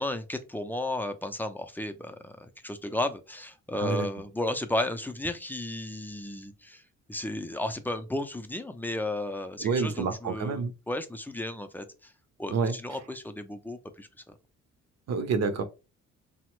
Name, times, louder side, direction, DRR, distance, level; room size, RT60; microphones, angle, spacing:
voice 1, 0.0-6.8 7.1-12.1 12.4-14.3, left 1 dB, 5° left, 0.4 m, -34 dB
voice 2, 9.6-10.7 12.5-12.8 15.1-15.6, right 5 dB, 60° right, 0.6 m, -28 dB
3.2 x 2.1 x 3.0 m
cardioid pair, 90°, 30 cm